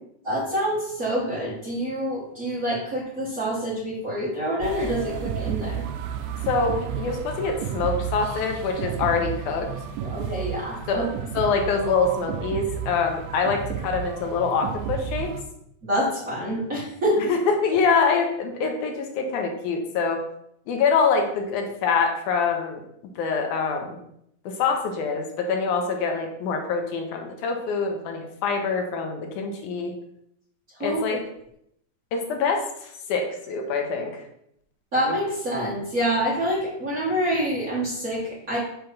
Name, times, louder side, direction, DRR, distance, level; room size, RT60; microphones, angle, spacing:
voice 1, 0.2-5.8 10.0-11.1 15.8-17.2 30.8-31.2 34.9-38.6, equal, 35° right, -8 dB, 1.5 m, -26 dB
sound 1, 4.6-15.4, right 8 dB, 80° right, 2.1 m, -32 dB
voice 2, 6.5-9.7 10.9-11.0 11.3-15.3 17.3-20.2 20.7-22.8 23.2-24.0 24.5-29.9 30.8-31.2 32.1-34.2, left 5 dB, 80° left, 3 dB, 2.3 m, -25 dB
5.7 x 3.4 x 5.8 m, 0.74 s
omnidirectional pair, 3.6 m